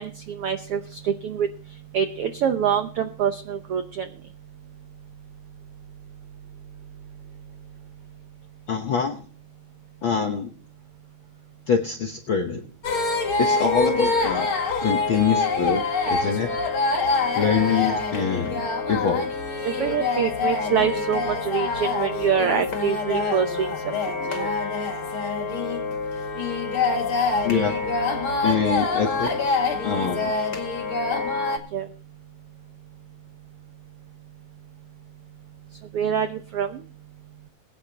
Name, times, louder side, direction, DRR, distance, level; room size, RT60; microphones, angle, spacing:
voice 1, 0.0-1.5 1.9-4.1 19.8-23.9 24.2-24.5 31.7-31.9 35.9-36.8, right 7 dB, 80° right, 8 dB, 1.3 m, -25 dB
voice 2, 8.7-9.2 10.0-10.5 11.7-12.6 13.4-14.5 14.8-16.5 17.4-18.6 18.9-19.3 27.4-27.8 28.4-30.3, left 6 dB, 75° left, 4 dB, 1.1 m, -24 dB
sound 1, 12.8-31.6, left 3 dB, 45° left, 2.5 m, -25 dB
22.0 x 9.6 x 2.9 m, 0.38 s
omnidirectional pair, 3.8 m